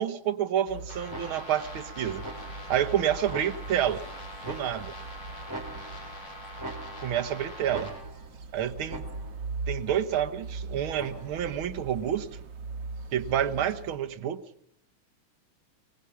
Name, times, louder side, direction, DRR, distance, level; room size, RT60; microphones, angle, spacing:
voice 1, 0.0-2.3 2.7-4.0 4.4-5.0 7.0-7.9 8.5-9.1 9.7-12.4 13.1-14.4, right 10 dB, 75° right, 8 dB, 1.9 m, -29 dB
sound 1, 0.7-14.0, right 3 dB, 60° right, 1.8 m, -41 dB
sound 2, 0.9-7.9, left 1 dB, 90° left, 5.8 m, -44 dB
sound 3, 1.1-1.7 2.2-2.8 3.3-3.9 4.4-5.1 5.5-6.2 6.6-7.3 7.7-8.4 8.9-9.5 11.0-11.6, right 1 dB, 10° right, 1.5 m, -43 dB
23.5 x 19.0 x 5.7 m, 0.65 s
omnidirectional pair, 2.3 m